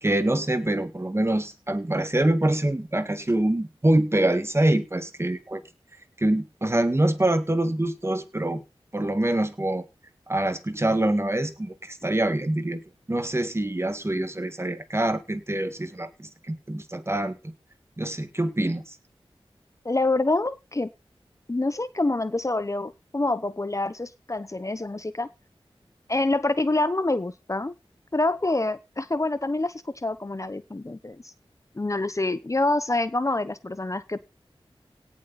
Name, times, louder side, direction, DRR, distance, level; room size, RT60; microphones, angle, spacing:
voice 1, 0.0-5.6 6.2-8.6 8.9-9.9 10.3-12.8 13.1-17.3 18.0-19.0, right 1 dB, 25° right, 10 dB, 1.9 m, -25 dB
voice 2, 19.8-20.9 21.5-25.3 26.1-27.7 28.1-31.2 31.7-34.2, left 2 dB, 30° left, 14 dB, 1.0 m, -26 dB
17.5 x 7.7 x 4.2 m, 0.28 s
wide cardioid pair, 65°, 10 cm